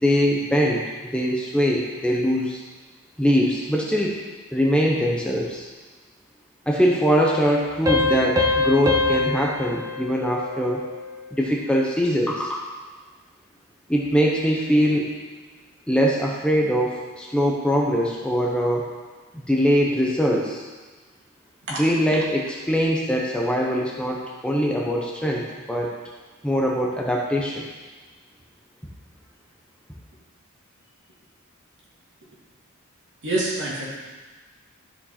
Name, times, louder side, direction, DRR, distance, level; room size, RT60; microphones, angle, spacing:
voice 1, 0.0-2.6 3.2-4.2 4.5-5.6 6.7-10.8 11.3-12.6 13.9-15.1 15.9-18.9 19.5-20.6 21.8-25.9 26.4-27.6, equal, 5° left, -2 dB, 0.7 m, -22 dB
Piano, 7.9-11.1, left 3 dB, 15° right, 1.0 m, -24 dB
voice 2, 33.2-33.8, right 2 dB, 55° right, -5 dB, 2.5 m, -25 dB
12.5 x 5.1 x 4.3 m, 1.3 s
head